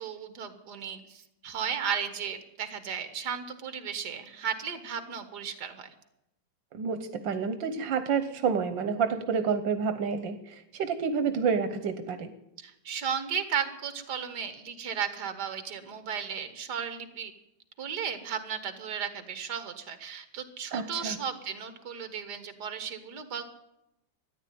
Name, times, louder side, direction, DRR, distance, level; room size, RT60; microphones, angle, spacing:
voice 1, 0.0-5.9 12.6-17.3 17.8-23.4, right 7 dB, 65° right, 10 dB, 2.0 m, -35 dB
voice 2, 6.7-12.3 20.7-21.2, right 6 dB, 85° right, 9 dB, 1.7 m, -29 dB
13.5 x 10.0 x 9.3 m, 0.88 s
omnidirectional pair, 2.0 m